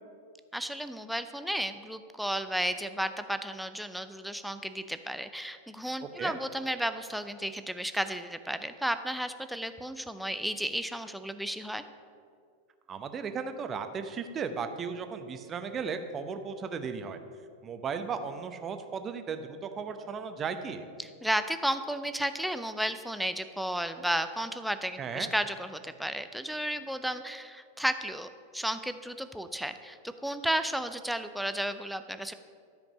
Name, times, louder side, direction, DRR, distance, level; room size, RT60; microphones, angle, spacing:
voice 1, 0.5-11.8 21.0-28.3 28.5-30.0 30.2-32.3, equal, ahead, 9 dB, 0.5 m, -33 dB
voice 2, 6.0-6.4 12.9-17.2 17.6-20.9 25.0-25.3, right 6 dB, 25° right, 8 dB, 0.8 m, -36 dB
12.5 x 5.2 x 6.2 m, 2.3 s
figure-of-eight pair, 90°, 0 cm